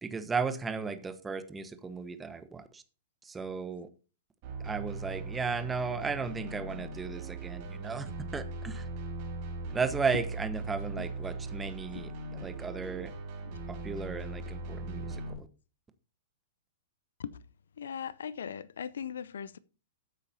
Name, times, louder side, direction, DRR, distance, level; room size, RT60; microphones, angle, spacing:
voice 1, 0.0-2.8 3.2-3.9 4.6-8.1 8.3-8.9 9.7-12.1 12.4-13.1 13.7-15.5, right 5 dB, 15° right, 1.1 m, -35 dB
sound 1, 4.4-15.3, right 3 dB, 45° right, 4.5 m, -39 dB
voice 2, 17.8-19.6, left 7 dB, 70° left, 0.6 m, -39 dB
14.5 x 8.3 x 2.8 m
figure-of-eight pair, 105°, 0 cm